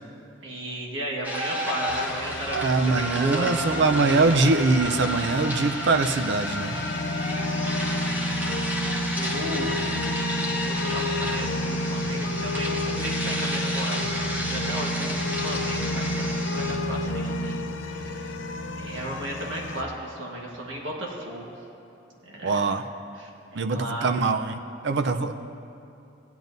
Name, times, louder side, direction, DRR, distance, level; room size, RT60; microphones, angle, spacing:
voice 1, 0.4-2.6 3.0-4.5 7.5-7.6 8.0-9.7 10.1-14.0 14.5-17.6 17.9-18.4 18.7-21.5 22.2-22.6 23.2-24.1, right 1 dB, 80° right, -2 dB, 1.4 m, -35 dB
sound 1, 1.2-16.8, left 1 dB, 10° right, 1.1 m, -32 dB
sound 2, 1.9-19.8, left 1 dB, 75° left, 0.7 m, -30 dB
voice 2, 2.5-6.8 22.4-22.9 23.5-25.3, right 3 dB, 65° right, 8 dB, 0.5 m, -23 dB
16.5 x 10.5 x 2.7 m, 2.7 s
head